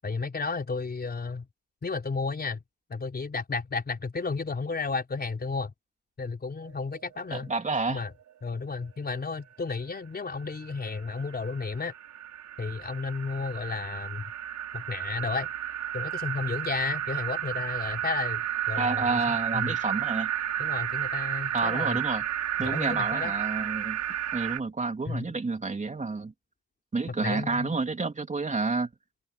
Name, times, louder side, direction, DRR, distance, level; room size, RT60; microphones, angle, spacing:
voice 1, 0.0-1.5 1.8-2.6 2.9-5.7 6.2-7.5 7.9-8.1 8.4-11.9 12.6-14.3 14.7-15.5 15.9-18.4 18.7-19.2 19.5-19.8 20.6-22.0 22.6-23.3 25.1-25.3 27.2-27.7, left 4 dB, 30° left, 4.2 m, -32 dB
sound 1, 6.7-6.8 7.0-7.1 7.5-7.6 10.5-24.6, right 11 dB, 70° right, 5.3 m, -32 dB
voice 2, 7.3-8.0 18.8-20.3 21.5-22.2 22.6-24.0 24.3-26.3 26.9-28.9, right 3 dB, 25° right, 3.3 m, -29 dB
cardioid pair, 90°, 30 cm